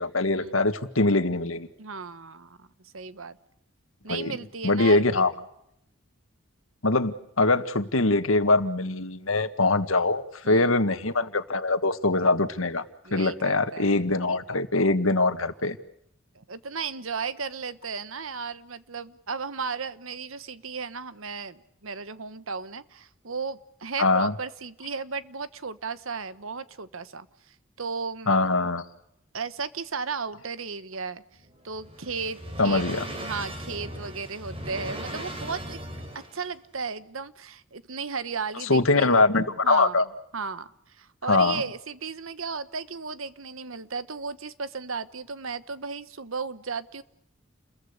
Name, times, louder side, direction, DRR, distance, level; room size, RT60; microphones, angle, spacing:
voice 1, 0.0-1.7 4.1-4.4 4.6-5.3 6.8-12.8 13.1-15.8 24.0-24.3 28.3-28.8 32.6-33.0 38.6-40.0 41.3-41.6, left 2 dB, 80° left, 10 dB, 1.8 m, -23 dB
voice 2, 1.8-3.4 4.0-5.3 10.4-10.7 13.0-14.1 16.3-28.3 29.3-31.2 31.6-35.8 36.3-39.2 39.6-40.1 40.3-47.0, right 5 dB, 85° right, 14 dB, 1.3 m, -35 dB
sound 1, 31.3-36.5, right 1 dB, 30° right, 4.2 m, -38 dB
30.0 x 22.0 x 6.7 m, 0.76 s
head